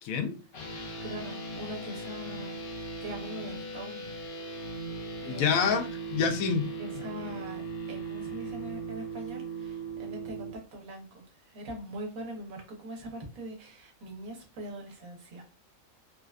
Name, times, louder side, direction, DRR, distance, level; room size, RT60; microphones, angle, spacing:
voice 1, 0.0-0.4 5.3-6.7, left 6 dB, 80° left, 6 dB, 1.0 m, -27 dB
sound 1, 0.5-10.5, right 3 dB, 55° left, 0.7 m, -38 dB
voice 2, 0.8-4.1 5.2-5.7 6.8-15.4, right 1 dB, 85° right, 1 dB, 1.3 m, -42 dB
3.3 x 2.2 x 2.3 m, 0.34 s
omnidirectional pair, 1.4 m